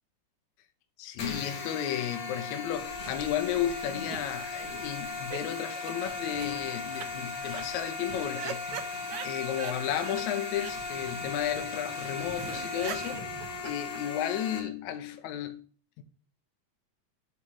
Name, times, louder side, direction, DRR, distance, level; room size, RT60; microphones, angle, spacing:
voice 1, 1.0-8.6 9.2-13.3 13.6-15.6 16.0-16.1, left 11 dB, 75° left, 2.1 m, -33 dB
sound 1, 1.2-14.6, left 3 dB, 60° left, 3.0 m, -37 dB
sound 2, 2.7-13.8, left 1 dB, 45° left, 2.6 m, -50 dB
sound 3, 3.9-5.4 5.7-5.9 6.3-6.5 7.0-7.1 7.4-7.6 8.1-9.8 10.0-10.2 10.5-10.7 11.1-11.2 11.4-11.5 11.7-11.8 12.1-12.2 12.4-14.5, right 9 dB, 85° right, 1.3 m, -42 dB
11.0 x 3.7 x 4.6 m
omnidirectional pair, 3.5 m